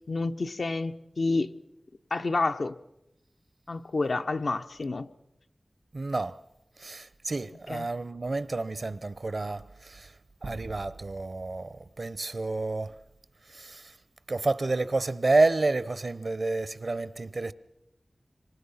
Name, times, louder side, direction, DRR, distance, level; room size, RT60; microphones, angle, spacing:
voice 1, 0.1-1.5 2.1-2.7 3.7-5.1 7.7-7.9, left 3 dB, 75° left, 0.8 m, -29 dB
voice 2, 5.9-6.4 6.8-10.1 10.4-13.0 13.5-13.9 14.3-17.5, right 3 dB, 60° right, 0.9 m, -29 dB
sound 1, 10.4-12.9, right 3 dB, 85° right, 1.9 m, -46 dB
26.5 x 24.0 x 5.7 m
wide cardioid pair, 50°, 0 cm